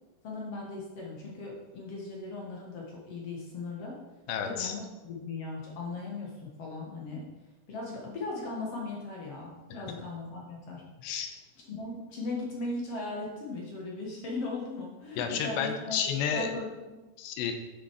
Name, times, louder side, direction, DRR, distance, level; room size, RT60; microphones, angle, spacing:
voice 1, 0.2-4.0 4.4-7.3 7.7-10.8 11.6-16.0 16.3-17.0, left 3 dB, 55° left, -2 dB, 1.8 m, -38 dB
voice 2, 4.3-4.7 9.7-9.8 11.0-11.3 15.2-16.5 17.2-17.5, left 7 dB, 85° left, 5 dB, 3.0 m, -31 dB
10.5 x 6.3 x 4.8 m, 1.1 s
omnidirectional pair, 4.9 m